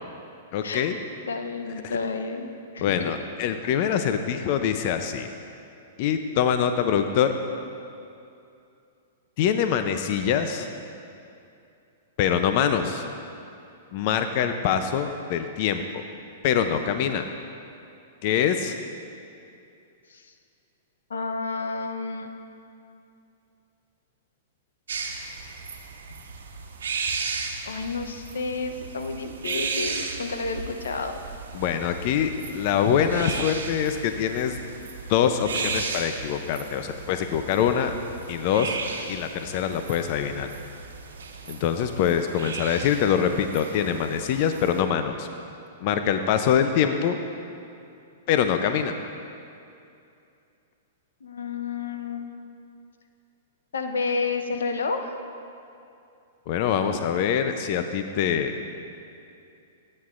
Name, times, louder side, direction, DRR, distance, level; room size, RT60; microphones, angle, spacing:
voice 1, 0.5-1.0 1.8-2.0 2.8-5.3 6.0-7.3 9.4-10.7 12.2-13.1 13.9-16.0 16.4-17.3 18.2-18.8 31.5-34.6 35.1-37.9 38.3-38.8 39.1-40.5 41.5-45.3 45.8-47.2 48.3-48.9 56.5-58.6, left 8 dB, 50° left, 8 dB, 0.5 m, -24 dB
voice 2, 1.3-2.5 2.7-3.1 20.1-20.3 21.1-22.3 27.6-31.2 51.2-52.3 53.7-55.2, left 4 dB, 85° left, 6 dB, 0.7 m, -30 dB
sound 1, 24.9-44.8, right 4 dB, 85° right, 1.0 m, -35 dB
16.5 x 8.7 x 2.5 m, 2.6 s
hypercardioid pair, 125°, 0 cm